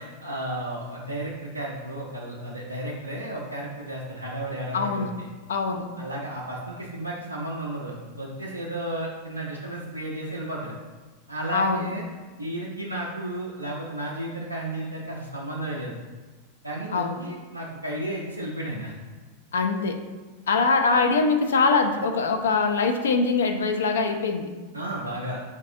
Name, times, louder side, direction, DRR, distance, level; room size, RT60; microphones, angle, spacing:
voice 1, 0.0-5.3 6.0-10.7 11.3-12.0 12.4-16.0 16.6-18.9 24.7-25.4, right 1 dB, 85° right, -3 dB, 0.4 m, -33 dB
voice 2, 4.7-5.1 5.5-5.9 11.5-11.9 16.9-17.2 19.5-20.0 20.5-24.5, left 4 dB, 65° left, 6 dB, 0.3 m, -23 dB
4.5 x 2.3 x 2.6 m, 1.3 s
figure-of-eight pair, 90°, 0 cm